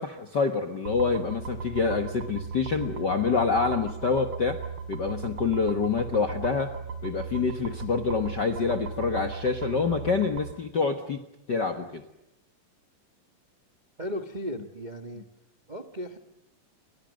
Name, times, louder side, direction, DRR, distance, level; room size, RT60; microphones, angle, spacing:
voice 1, 0.0-4.6 4.9-6.7 7.0-11.2 11.5-12.0, left 5 dB, 65° left, 7 dB, 1.0 m, -26 dB
sound 1, 0.8-10.5, right 5 dB, 40° right, 2.8 m, -37 dB
voice 2, 14.0-15.3 15.7-16.2, equal, 75° right, 6 dB, 0.4 m, -36 dB
30.0 x 24.5 x 6.5 m, 0.89 s
omnidirectional pair, 4.1 m